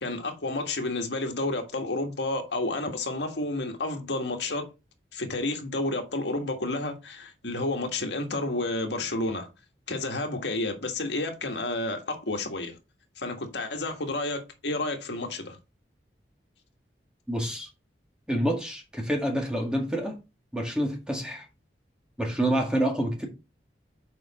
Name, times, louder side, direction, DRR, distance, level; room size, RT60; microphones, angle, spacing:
voice 1, 0.0-4.7 5.1-9.5 9.9-12.7 13.2-15.6, left 2 dB, 80° left, 1.6 m, -30 dB
voice 2, 17.3-17.7 18.3-20.2 20.5-21.5 22.2-23.3, right 1 dB, 5° right, 1.8 m, -27 dB
6.9 x 4.7 x 4.1 m
head